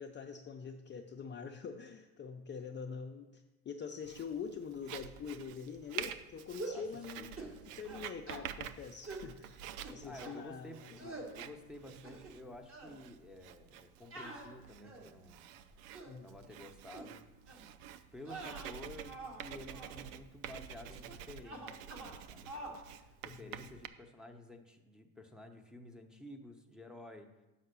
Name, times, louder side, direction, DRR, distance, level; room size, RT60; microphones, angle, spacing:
voice 1, 0.0-7.4 7.8-9.6 9.9-11.1 16.1-16.3 23.2-23.5, left 6 dB, 30° left, 3 dB, 0.5 m, -45 dB
Writing, 4.0-23.9, right 9 dB, 90° right, 0.5 m, -49 dB
sound 1, 6.6-6.9 7.4-7.6 7.9-8.4 9.1-9.3 9.8-10.4 11.0-11.3 11.8-12.4 12.7-12.9 14.1-15.2 15.7-16.2 16.9-17.1 17.5-17.7 18.2-19.4 19.7-20.0 20.9-21.2 21.4-22.2 22.5-22.8, right 2 dB, 30° right, 1.6 m, -46 dB
voice 2, 7.2-8.0 10.0-15.4 16.2-17.3 18.1-27.3, left 1 dB, ahead, 2 dB, 0.9 m, -52 dB
5.8 x 5.5 x 6.7 m, 1.0 s
supercardioid pair, 80°, 40 cm